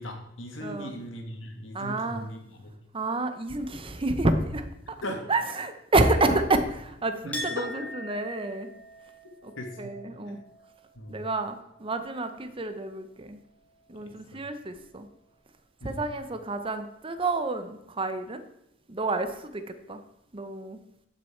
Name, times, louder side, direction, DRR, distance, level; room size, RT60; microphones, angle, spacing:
voice 1, 0.0-2.7 5.0-5.2 6.1-6.4 7.2-7.9 9.6-9.9 10.3-10.4 11.0-11.3 14.3-14.4 15.8-16.1, left 1 dB, 75° left, 3 dB, 2.0 m, -38 dB
voice 2, 0.6-0.9 1.7-2.3 2.9-4.7 5.3-6.6 7.0-8.7 9.4-9.5 9.8-10.4 11.1-13.4 13.9-15.1 15.8-18.4 18.9-19.6 19.9-20.0 20.3-20.8, right 2 dB, 25° right, 9 dB, 0.8 m, -29 dB
Chink clink, 7.3-12.8 13.1-14.0, left 1 dB, 5° left, 2.0 m, -43 dB
14.5 x 6.4 x 4.4 m, 0.80 s
head